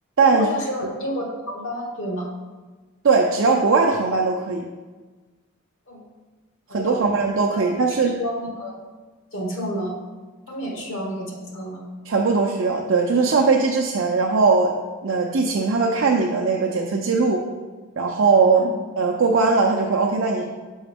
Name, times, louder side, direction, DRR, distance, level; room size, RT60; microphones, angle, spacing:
voice 1, 0.3-2.3 5.9-6.0 6.7-7.0 7.5-8.8 9.3-9.9 10.5-11.8 18.5-18.7, equal, 85° left, -1 dB, 1.4 m, -30 dB
voice 2, 3.0-4.7 6.7-8.2 12.1-14.7 15.0-17.5 18.0-18.6 19.0-20.4, right 4 dB, 80° right, 0 dB, 0.5 m, -19 dB
6.2 x 4.9 x 3.5 m, 1.3 s
head